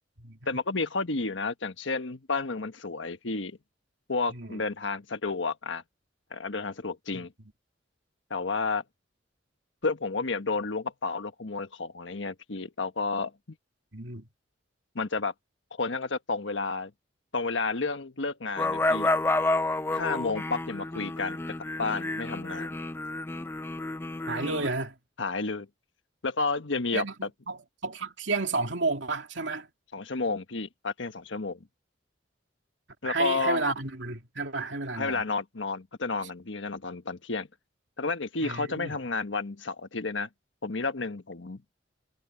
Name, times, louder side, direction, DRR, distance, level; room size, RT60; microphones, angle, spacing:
voice 1, 0.5-3.6 4.1-5.8 6.3-7.3 8.3-8.8 9.8-13.3 14.9-15.3 15.7-16.9 17.3-19.1 19.9-21.4 21.8-22.7 25.2-25.7 26.2-27.3 29.9-31.6 33.0-33.6 34.9-37.5 38.0-40.3 40.6-41.6, left 3 dB, 85° left, 1.4 m, -31 dB
voice 2, 4.3-4.6 7.1-7.2 13.9-14.3 24.3-25.0 26.9-29.7 33.0-35.2 38.4-38.9, right 3 dB, 75° right, 2.7 m, -31 dB
sound 1, 18.6-24.7, left 2 dB, 10° left, 0.4 m, -30 dB
head